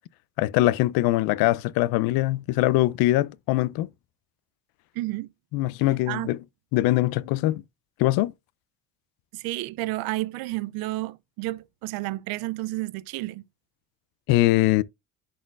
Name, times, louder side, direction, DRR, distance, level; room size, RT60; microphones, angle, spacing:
voice 1, 0.4-3.9 5.5-6.4 6.7-7.6 8.0-8.3 14.3-14.8, left 17 dB, 85° left, 0.5 m, -22 dB
voice 2, 5.0-5.3 6.1-6.3 9.3-13.4, right 18 dB, 85° right, 0.5 m, -31 dB
11.0 x 4.3 x 2.4 m
cardioid pair, 145°, 35 cm